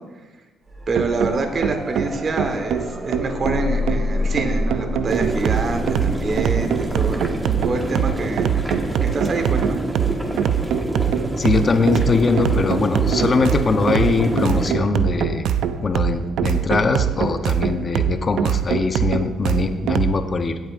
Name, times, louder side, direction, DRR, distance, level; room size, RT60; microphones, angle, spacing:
sound 1, 0.7-13.6 15.9-16.0, left 1 dB, 25° right, 2.1 m, -30 dB
voice 1, 0.9-7.3 7.6-8.5 9.0-9.8, right 3 dB, 45° right, 5 dB, 1.3 m, -26 dB
sound 2, 0.9-20.2, right 9 dB, 80° right, 0.4 m, -23 dB
sound 3, 5.1-14.7, right 1 dB, 10° right, 1.4 m, -28 dB
voice 2, 11.4-15.5 15.8-20.6, left 4 dB, 40° left, 7 dB, 0.8 m, -21 dB
16.5 x 8.0 x 2.6 m, 1.2 s
cardioid pair, 90°, 0 cm